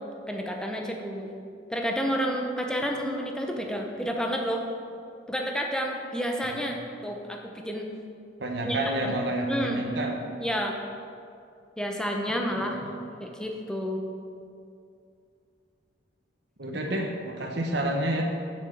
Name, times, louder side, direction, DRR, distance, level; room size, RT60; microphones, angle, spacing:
voice 1, 0.3-1.3 1.7-4.6 5.3-7.9 8.6-9.2 9.5-9.8 10.4-10.8 11.8-12.8 13.2-14.0 16.9-17.0, equal, 5° left, 1 dB, 0.8 m, -30 dB
voice 2, 8.4-10.3 12.3-12.9 16.6-18.2, right 1 dB, 65° right, 1 dB, 1.0 m, -30 dB
7.2 x 6.9 x 6.4 m, 2.5 s
head